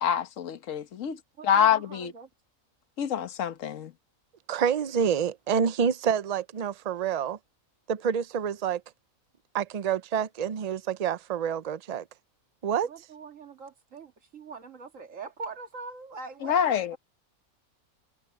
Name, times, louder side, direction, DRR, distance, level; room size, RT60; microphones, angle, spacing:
voice 1, 0.0-2.1 3.0-3.9 16.4-17.0, left 8 dB, 60° left, 1.4 m, -26 dB
voice 2, 1.4-2.3 12.8-17.0, right 4 dB, 60° right, 2.2 m, -43 dB
voice 3, 4.5-7.4 7.9-8.8 9.5-12.0 12.6-12.9, right 7 dB, 85° right, 0.3 m, -27 dB
omnidirectional pair, 1.5 m